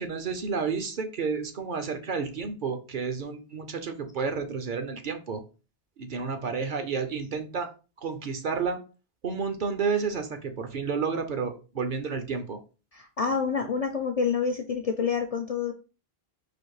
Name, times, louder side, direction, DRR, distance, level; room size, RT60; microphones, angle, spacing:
voice 1, 0.0-5.4 6.0-7.7 8.0-8.8 9.2-12.6, right 5 dB, 55° right, 7 dB, 0.8 m, -31 dB
voice 2, 12.9-15.7, left 5 dB, 50° left, 5 dB, 0.4 m, -28 dB
4.2 x 2.5 x 4.7 m, 0.32 s
omnidirectional pair, 1.0 m